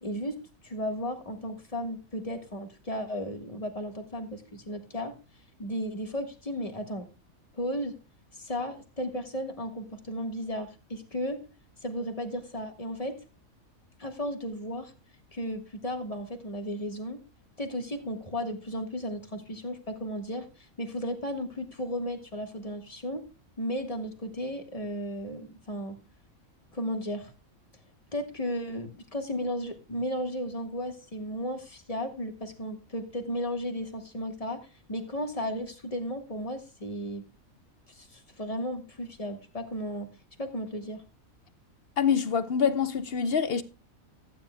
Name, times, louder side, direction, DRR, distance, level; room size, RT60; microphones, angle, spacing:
voice 1, 0.0-5.1 5.6-7.1 7.5-7.9 8.3-11.4 11.8-13.2 14.0-14.9 15.3-17.2 17.6-23.3 23.6-25.9 26.7-27.3 28.1-37.2 37.9-40.1 40.4-41.0, equal, 25° left, 1.5 m, -34 dB
voice 2, 42.0-43.6, left 7 dB, 55° left, 0.8 m, -25 dB
15.0 x 9.5 x 2.2 m
omnidirectional pair, 1.4 m